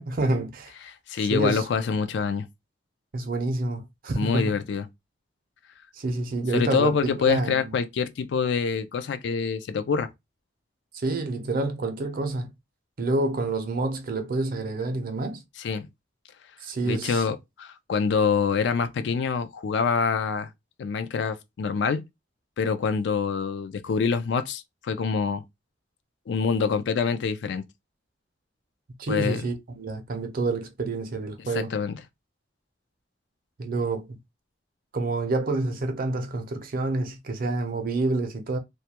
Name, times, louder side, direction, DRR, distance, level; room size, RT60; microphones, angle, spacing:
voice 1, 0.0-0.7 1.3-1.7 3.1-4.6 5.9-7.0 7.2-7.7 10.9-12.5 13.0-15.4 16.6-17.3 29.0-31.7 33.6-34.2 34.9-38.6, right 2 dB, 55° right, 0.5 m, -28 dB
voice 2, 0.9-2.5 4.1-4.8 6.5-10.1 15.6-15.9 16.8-20.5 20.8-22.0 22.6-25.4 26.3-27.6 29.1-29.4 31.5-32.0, left 5 dB, 70° left, 0.3 m, -26 dB
2.2 x 2.2 x 2.8 m
head